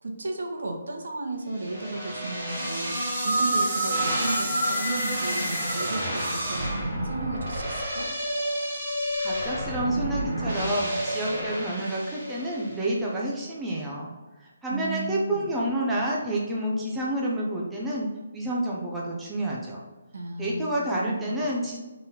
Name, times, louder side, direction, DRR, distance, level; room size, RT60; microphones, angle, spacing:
voice 1, 0.0-6.8 7.0-8.1 14.7-15.5 20.1-21.5, right 2 dB, 90° right, 2 dB, 1.6 m, -34 dB
sound 1, 1.6-12.9, right 1 dB, 25° right, 1.9 m, -29 dB
voice 2, 9.2-14.1 14.4-18.1 18.3-19.8 20.4-21.8, right 1 dB, 5° right, -5 dB, 0.7 m, -29 dB
7.5 x 4.1 x 4.0 m, 1.2 s
hypercardioid pair, 180°, 0 cm